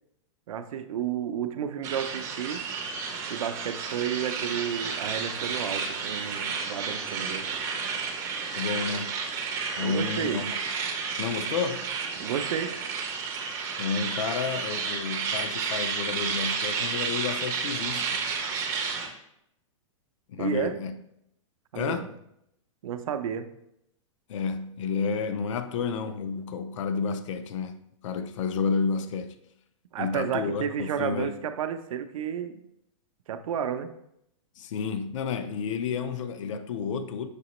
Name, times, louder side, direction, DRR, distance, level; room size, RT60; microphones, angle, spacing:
voice 1, 0.5-2.6 3.3-7.5 9.8-10.5 12.2-12.8 20.4-20.8 21.7-22.1 22.8-23.5 29.9-32.6 33.3-33.9, right 8 dB, 85° right, 0.5 m, -31 dB
sound 1, 1.8-19.1, right 5 dB, 15° right, 0.4 m, -31 dB
voice 2, 8.5-9.2 9.8-10.6 11.2-11.9 13.8-18.2 20.3-20.9 21.7-22.1 24.3-29.4 30.0-31.3 34.6-37.3, left 5 dB, 65° left, 0.4 m, -31 dB
6.0 x 2.8 x 3.0 m
supercardioid pair, 165°, 17 cm